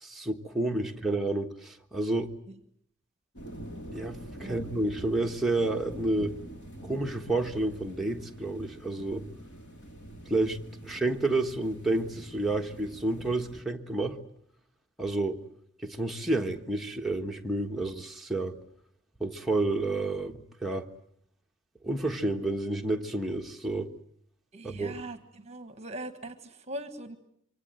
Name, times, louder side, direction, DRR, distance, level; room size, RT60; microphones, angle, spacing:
voice 1, 0.0-2.3 3.9-6.4 6.8-9.3 10.3-10.6 10.8-14.2 15.0-15.4 15.8-18.6 19.2-20.9 21.8-23.9 24.6-24.9, right 2 dB, ahead, 1.4 m, -30 dB
sound 1, 3.4-13.6, right 1 dB, 60° left, 3.3 m, -45 dB
voice 2, 24.5-27.2, right 1 dB, 30° right, 1.5 m, -41 dB
26.5 x 24.0 x 7.9 m
head